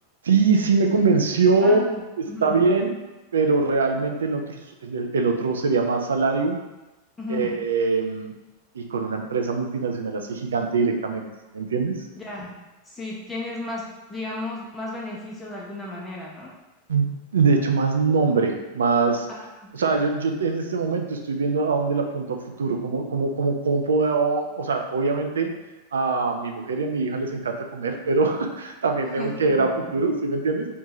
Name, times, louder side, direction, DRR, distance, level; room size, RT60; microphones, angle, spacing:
voice 1, 0.2-1.8 2.2-2.9 3.3-6.6 7.3-8.3 8.7-11.2 11.5-12.0 16.9-17.1 17.3-19.3 19.7-25.5 25.9-30.7, right 4 dB, 65° right, 3 dB, 0.3 m, -23 dB
voice 2, 1.5-2.0 2.3-2.6 7.2-7.5 12.2-12.5 12.9-16.5 19.6-19.9 29.2-29.7, left 2 dB, 10° left, -5 dB, 0.5 m, -34 dB
2.6 x 2.1 x 3.0 m, 1.1 s
figure-of-eight pair, 90°, 0 cm